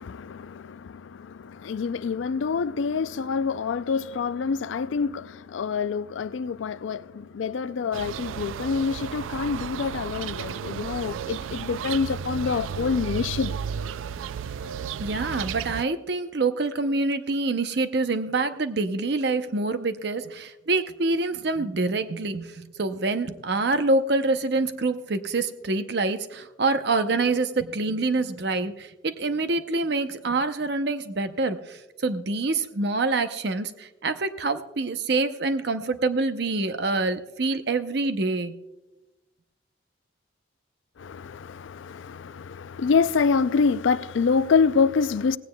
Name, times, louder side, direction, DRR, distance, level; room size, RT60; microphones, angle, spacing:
voice 1, 0.0-13.5 41.0-45.4, left 5 dB, 80° left, 0.4 m, -26 dB
sound 1, 7.9-15.8, right 7 dB, 85° right, 0.3 m, -33 dB
voice 2, 15.0-38.5, right 3 dB, 55° right, 0.7 m, -26 dB
18.0 x 16.5 x 2.2 m
head